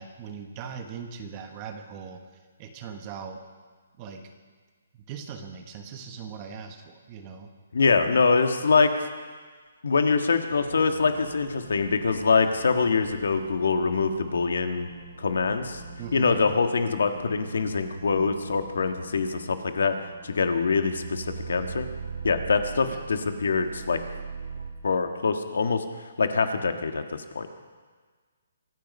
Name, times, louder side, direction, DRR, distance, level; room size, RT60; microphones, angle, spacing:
voice 1, 0.0-2.2 2.6-3.4 4.0-4.2 5.1-7.5 16.0-16.4 22.9-23.0, right 6 dB, 20° right, 6 dB, 1.2 m, -39 dB
voice 2, 7.7-8.9 9.8-14.9 15.2-15.8 16.1-20.0 20.2-21.9 22.2-24.0 24.8-25.8 26.2-27.5, left 4 dB, 80° left, 7 dB, 1.6 m, -24 dB
sound 1, 10.5-24.7, right 5 dB, 75° right, 2.7 m, -42 dB
25.0 x 9.4 x 5.4 m, 1.5 s
hypercardioid pair, 170°, 0 cm